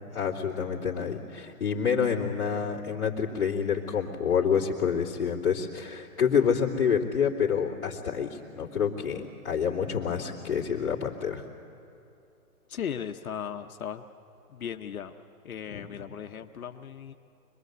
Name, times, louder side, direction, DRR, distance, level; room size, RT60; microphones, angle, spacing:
voice 1, 0.1-11.5 15.7-16.0, left 7 dB, 45° left, -9 dB, 2.8 m, -28 dB
voice 2, 12.7-14.0 14.5-15.1 15.4-17.1, left 8 dB, 70° left, 7 dB, 1.0 m, -37 dB
25.0 x 21.0 x 8.0 m, 2.6 s
hypercardioid pair, 170°, 44 cm